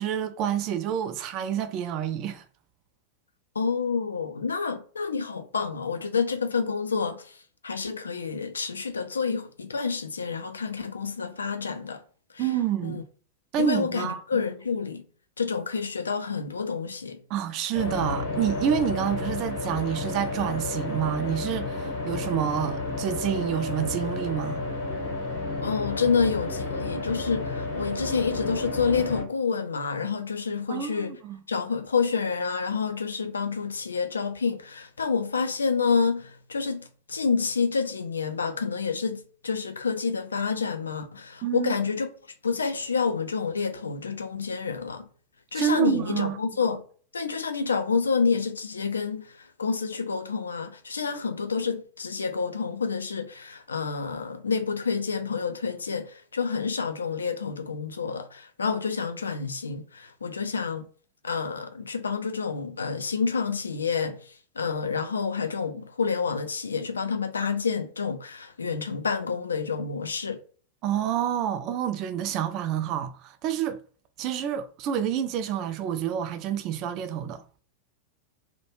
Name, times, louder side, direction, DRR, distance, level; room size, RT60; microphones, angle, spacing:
voice 1, 0.0-2.4 12.4-13.0 13.5-14.4 17.3-24.6 30.7-31.4 41.4-41.7 45.5-46.4 70.8-73.8 74.2-77.4, right 9 dB, 40° right, 0.3 m, -28 dB
voice 2, 3.6-7.4 7.6-12.0 12.3-12.5 12.8-13.0 13.6-15.0 15.4-17.2 25.6-31.2 31.5-42.1 42.4-45.1 45.5-46.8 47.1-60.9 61.2-64.2 64.6-70.4, left 5 dB, 75° left, 0.3 m, -28 dB
sound 1, 17.7-29.2, left 3 dB, 50° left, 0.8 m, -31 dB
2.2 x 2.1 x 3.0 m
figure-of-eight pair, 90°, 0 cm